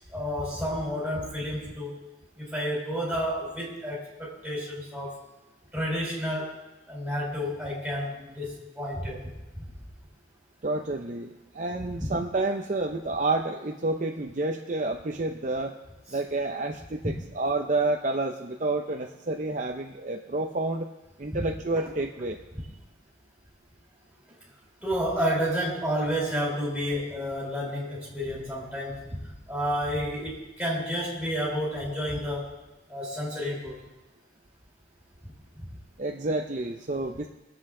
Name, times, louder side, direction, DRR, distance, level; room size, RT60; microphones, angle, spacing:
voice 1, 0.1-2.0 2.4-5.2 5.7-6.6 6.9-9.3 9.5-9.6 12.0-12.1 17.0-17.1 21.3-21.4 21.8-21.9 24.8-32.5 32.9-33.8, equal, 5° right, -4 dB, 3.9 m, -30 dB
voice 2, 10.6-15.7 16.1-20.9 21.2-22.4 36.0-37.3, right 2 dB, 40° right, 3 dB, 0.6 m, -29 dB
23.5 x 7.9 x 3.8 m, 1.1 s
head